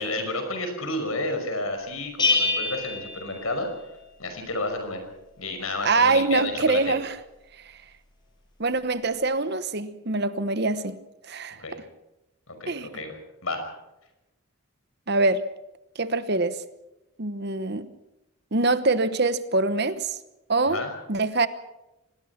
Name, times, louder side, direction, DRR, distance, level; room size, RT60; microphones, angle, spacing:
voice 1, 0.0-3.7 4.2-5.0 5.4-6.9 11.6-11.8 12.5-13.1 13.4-13.6 20.6-20.9, left 2 dB, 75° left, 5.6 m, -31 dB
Bell, 2.2-4.0, left 3 dB, 20° left, 6.6 m, -26 dB
voice 2, 5.8-7.2 8.6-11.0 11.3-11.6 12.7-12.9 15.1-15.4 16.0-16.6 17.2-17.9 18.5-20.1 20.5-20.8 21.1-21.5, right 3 dB, 50° right, 1.1 m, -24 dB
25.5 x 19.5 x 5.9 m
head